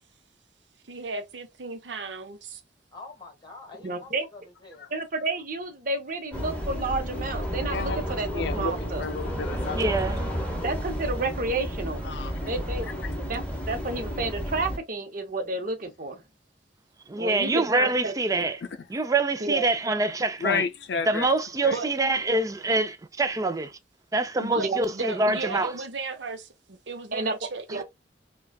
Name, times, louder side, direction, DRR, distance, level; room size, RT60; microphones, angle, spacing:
voice 1, 0.9-2.6 17.1-17.3 21.7-21.9 24.4-27.8, right 3 dB, 80° right, 0.8 m, -35 dB
voice 2, 2.9-4.9 12.8-13.1, left 3 dB, 25° left, 1.4 m, -46 dB
voice 3, 3.8-4.3 4.9-9.1 10.6-12.0 12.5-12.9 13.2-16.2 17.2-18.1 19.4-19.6 24.6-24.8 27.1-27.3 27.7-27.8, right 3 dB, 50° right, 0.8 m, -30 dB
sound 1, 6.3-14.8, equal, 5° left, 1.1 m, -31 dB
voice 4, 7.7-9.8 12.0-12.3 20.4-21.3 21.6-21.8, left 5 dB, 70° left, 0.5 m, -31 dB
voice 5, 9.7-10.3 17.1-18.6 18.9-20.6 21.1-23.7 24.1-25.7, right 2 dB, 20° right, 0.4 m, -25 dB
4.9 x 2.3 x 2.3 m
head